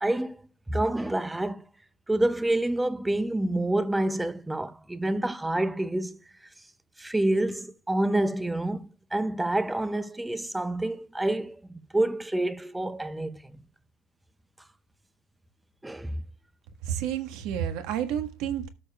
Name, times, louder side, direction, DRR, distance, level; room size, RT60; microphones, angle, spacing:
voice 1, 0.0-0.4 0.7-1.6 2.1-6.2 7.0-11.6 11.9-13.4 15.8-16.2, right 1 dB, 5° right, 0.5 m, -27 dB
voice 2, 16.8-18.7, right 9 dB, 65° right, 1.4 m, -30 dB
13.0 x 6.7 x 2.3 m
cardioid pair, 165°, 0 cm